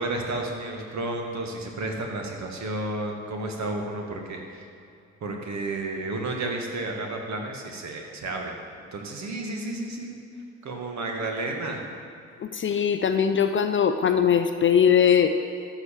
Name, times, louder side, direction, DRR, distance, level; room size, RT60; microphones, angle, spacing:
voice 1, 0.0-4.7 5.2-8.5 8.9-10.2 10.6-11.9, right 2 dB, 45° right, 2 dB, 1.9 m, -32 dB
voice 2, 12.4-15.3, left 8 dB, 30° left, 8 dB, 0.6 m, -21 dB
13.0 x 4.9 x 7.5 m, 2.6 s
figure-of-eight pair, 45°, 38 cm